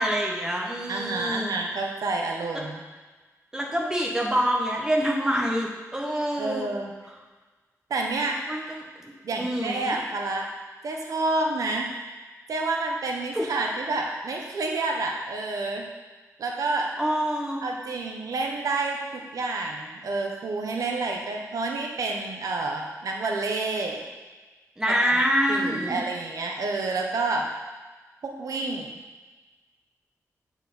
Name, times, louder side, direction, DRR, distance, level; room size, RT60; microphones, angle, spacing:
voice 1, 0.0-1.5 3.5-6.7 8.5-10.0 13.3-13.5 17.0-17.6 24.8-26.0, equal, 10° right, -1 dB, 1.2 m, -26 dB
voice 2, 0.9-2.8 6.4-6.9 7.9-8.4 9.2-10.5 10.8-11.9 12.5-15.9 16.4-16.9 17.6-24.0 25.1-25.2 25.5-27.5 28.2-29.0, right 3 dB, 70° right, 1 dB, 1.1 m, -29 dB
8.1 x 4.5 x 6.9 m, 1.3 s
wide cardioid pair, 170°, 6 cm